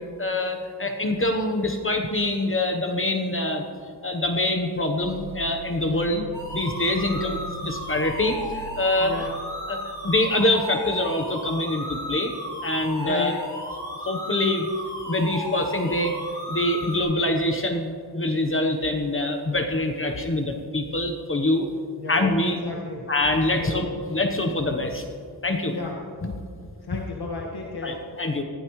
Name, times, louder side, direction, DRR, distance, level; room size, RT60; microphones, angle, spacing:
voice 1, 0.2-3.6 4.0-6.2 6.5-7.4 7.6-9.1 9.7-12.3 12.6-13.3 14.0-14.7 15.1-16.1 16.5-21.7 22.1-22.6 23.1-25.0 25.4-25.8 26.2-26.3 27.8-28.4, left 1 dB, 30° left, 4 dB, 1.0 m, -25 dB
sound 1, 5.0-9.9, right 6 dB, 45° right, 1.3 m, -42 dB
voice 2, 5.9-6.3 6.9-7.4 9.0-9.3 13.0-13.3 22.0-23.1 23.5-23.8 25.7-26.0 26.8-28.0, left 4 dB, 70° left, -2 dB, 1.7 m, -34 dB
sound 2, 6.3-17.0, equal, 10° left, 3.5 m, -35 dB
19.5 x 15.0 x 3.2 m, 2.3 s
wide cardioid pair, 120°, 41 cm